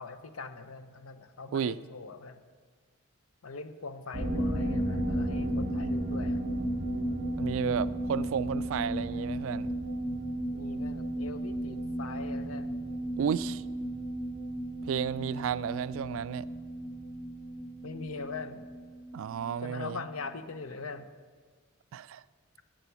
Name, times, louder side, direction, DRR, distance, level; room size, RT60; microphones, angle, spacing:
voice 1, 0.0-2.4 3.4-6.4 10.5-12.7 17.8-18.7 19.6-21.1, left 4 dB, 75° left, 10 dB, 0.7 m, -42 dB
sound 1, 4.1-19.5 19.8-19.9 20.2-20.3, right 1 dB, 40° right, 2.0 m, -34 dB
voice 2, 7.4-9.7 13.2-13.6 14.8-16.5 19.1-20.0 21.9-22.2, right 7 dB, 65° right, 18 dB, 0.3 m, -32 dB
9.1 x 9.1 x 6.9 m, 1.5 s
head